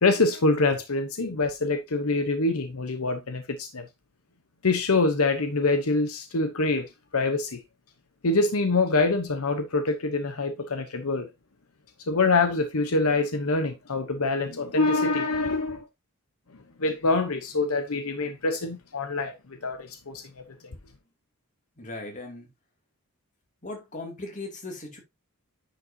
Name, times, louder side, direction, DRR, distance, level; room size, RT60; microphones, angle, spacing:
voice 1, 0.0-3.9 4.6-7.6 8.2-11.3 12.1-15.8 16.8-20.4, left 3 dB, 80° left, 0.9 m, -25 dB
voice 2, 21.8-22.5 23.6-25.0, left 2 dB, 35° left, 2.6 m, -38 dB
10.0 x 5.4 x 2.8 m
head